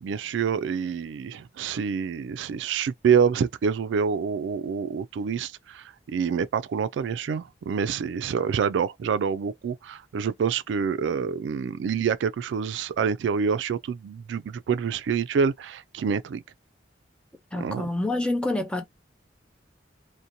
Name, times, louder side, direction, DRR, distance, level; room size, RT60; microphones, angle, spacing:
voice 1, 0.0-16.4 17.6-17.9, right 6 dB, 90° right, 0.3 m, -27 dB
voice 2, 17.5-18.8, left 2 dB, 5° left, 0.5 m, -27 dB
2.7 x 2.1 x 2.5 m
head